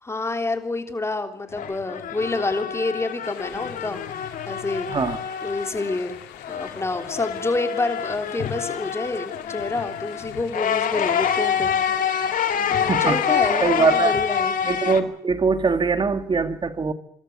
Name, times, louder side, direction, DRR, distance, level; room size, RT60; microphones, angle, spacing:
voice 1, 0.0-4.0 4.5-4.9 5.4-6.2 6.5-11.7 12.7-14.5, left 2 dB, 15° left, 6 dB, 3.4 m, -28 dB
sound 1, 1.5-6.1 6.4-15.0, left 8 dB, 55° left, 2.5 m, -26 dB
sound 2, 3.2-14.4, left 12 dB, 85° left, 3.0 m, -44 dB
voice 2, 4.9-5.2 12.9-13.2 13.6-14.1 14.6-16.9, right 4 dB, 25° right, 9 dB, 2.1 m, -22 dB
27.0 x 13.5 x 9.6 m, 0.74 s
cardioid pair, 110°, 17 cm